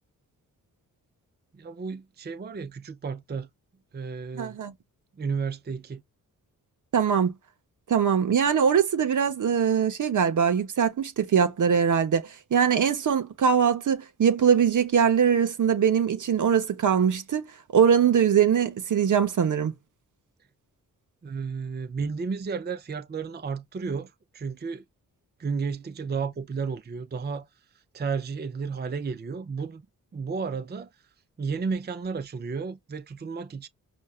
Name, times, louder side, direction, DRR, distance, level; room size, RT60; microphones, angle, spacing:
voice 1, 1.5-3.5 3.9-4.6 5.2-6.0 21.2-24.8 25.4-27.5 27.9-29.8 30.1-30.9 31.4-33.7, right 5 dB, 30° right, 0.6 m, -32 dB
voice 2, 4.3-4.7 6.9-7.3 7.9-17.5 17.7-19.7, right 7 dB, 60° right, 0.9 m, -22 dB
5.3 x 2.3 x 2.4 m
cardioid pair, 60°, 35 cm